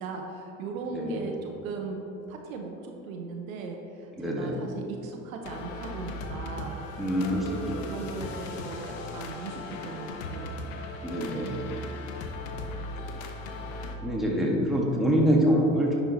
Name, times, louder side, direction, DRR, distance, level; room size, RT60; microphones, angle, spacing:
voice 1, 0.0-2.0 2.3-6.8 7.5-10.5, right 4 dB, 75° right, 3 dB, 0.9 m, -38 dB
voice 2, 0.9-1.3 4.2-4.6 7.0-7.5 7.7-7.8 11.0-11.6 14.0-16.0, equal, ahead, -3 dB, 1.7 m, -25 dB
sound 1, 5.4-14.0, left 2 dB, 75° left, 0.9 m, -38 dB
10.0 x 4.6 x 4.0 m, 2.9 s
hypercardioid pair, 65°, 41 cm